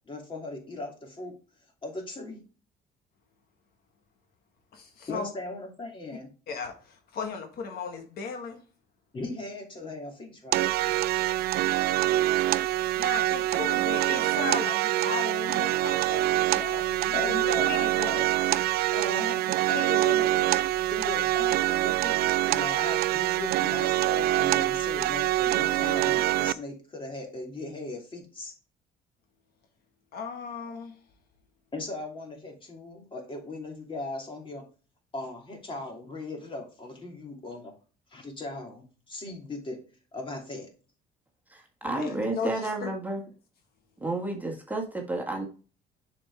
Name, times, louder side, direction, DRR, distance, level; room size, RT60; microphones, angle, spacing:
voice 1, 0.1-1.3 1.8-2.4 5.1-6.3 9.1-10.7 17.1-18.3 18.9-20.5 20.9-28.5 31.7-34.6 35.1-37.7 38.1-39.8 40.1-40.7, left 2 dB, 30° left, 2.8 m, -38 dB
voice 2, 4.7-5.3 6.5-8.6 13.0-18.1 19.7-20.0 30.1-31.0 41.8-42.9, left 5 dB, 65° left, 1.6 m, -36 dB
sound 1, 10.5-26.5, right 15 dB, 65° right, 0.4 m, -25 dB
voice 3, 41.5-43.2 44.0-45.5, right 2 dB, 10° right, 1.7 m, -31 dB
7.0 x 5.3 x 3.5 m
cardioid pair, 110°, 17 cm